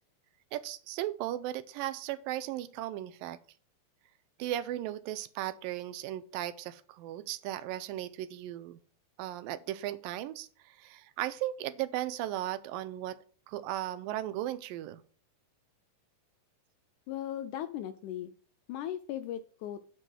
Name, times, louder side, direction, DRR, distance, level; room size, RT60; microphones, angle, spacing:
voice 1, 0.5-3.4 4.4-8.8 9.2-13.2 13.5-15.0, right 13 dB, 90° right, 12 dB, 2.3 m, -36 dB
voice 2, 17.1-18.3 18.7-19.8, left 11 dB, 80° left, 11 dB, 1.9 m, -37 dB
9.1 x 4.9 x 5.9 m, 0.42 s
omnidirectional pair, 4.0 m